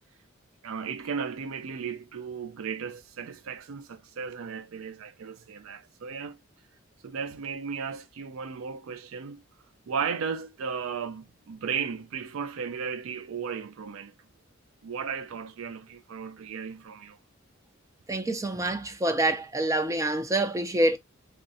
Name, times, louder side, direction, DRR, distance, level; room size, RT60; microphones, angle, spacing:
voice 1, 0.6-6.4 7.0-9.4 9.9-14.1 14.8-17.2, right 6 dB, 85° right, 0.4 m, -35 dB
voice 2, 18.1-21.0, right 1 dB, 15° right, 0.4 m, -26 dB
3.6 x 2.1 x 2.6 m
head